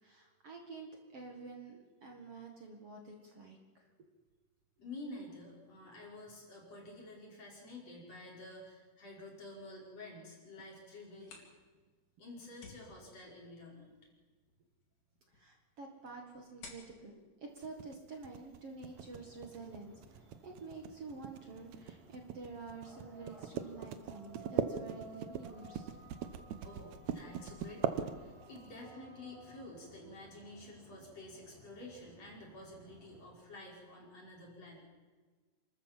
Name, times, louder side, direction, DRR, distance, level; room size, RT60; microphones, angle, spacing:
voice 1, 0.0-3.6 15.3-20.0 20.4-25.9, right 4 dB, 50° right, 2 dB, 2.5 m, -49 dB
voice 2, 4.8-11.4 12.2-14.0 26.6-34.9, left 2 dB, 45° left, -2 dB, 6.1 m, -50 dB
sound 1, 11.0-18.5, left 4 dB, 70° left, 5.0 m, -59 dB
sound 2, 17.6-28.7, right 9 dB, 65° right, 2.0 m, -40 dB
sound 3, 18.8-33.3, right 2 dB, 85° right, 5.7 m, -57 dB
28.5 x 13.5 x 7.5 m, 1.4 s
omnidirectional pair, 4.0 m